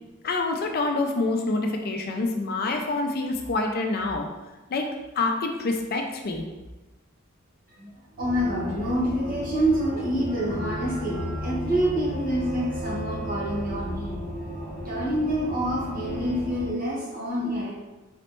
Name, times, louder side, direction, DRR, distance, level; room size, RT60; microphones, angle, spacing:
voice 1, 0.2-4.3 4.7-4.9 5.2-6.4, left 3 dB, 50° left, 3 dB, 0.4 m, -26 dB
voice 2, 8.2-14.2 14.8-17.7, equal, 45° right, -5 dB, 1.2 m, -27 dB
sound 1, 8.2-16.7, equal, 65° right, 0.9 m, -34 dB
4.2 x 3.1 x 3.0 m, 1.1 s
head